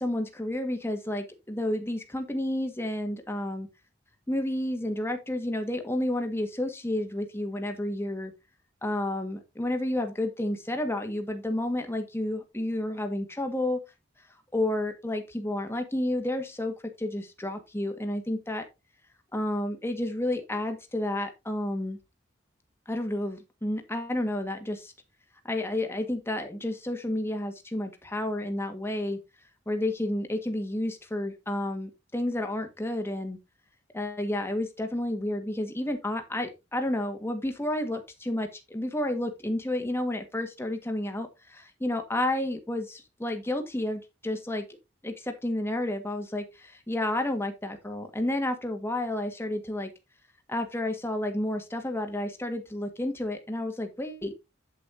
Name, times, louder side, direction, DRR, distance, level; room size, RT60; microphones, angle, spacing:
voice 1, 0.0-3.7 4.3-8.3 8.8-13.8 14.5-18.6 19.3-22.0 22.9-24.9 25.4-29.2 29.6-33.4 33.9-44.6 45.0-49.9 50.5-54.5, left 1 dB, 15° left, 5 dB, 1.7 m, -31 dB
8.5 x 8.5 x 2.7 m, 0.24 s
head